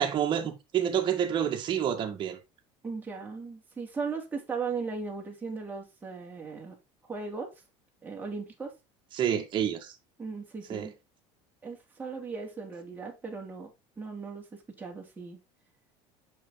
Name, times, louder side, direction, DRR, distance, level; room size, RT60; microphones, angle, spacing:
voice 1, 0.0-2.4 9.1-9.9 10.7-10.9, right 9 dB, 40° right, 2.0 m, -28 dB
voice 2, 2.8-6.8 7.1-7.5 8.0-8.7 10.2-10.9 11.6-15.4, right 4 dB, 15° right, 3.1 m, -37 dB
7.4 x 6.1 x 4.0 m
cardioid pair, 135°, 13 cm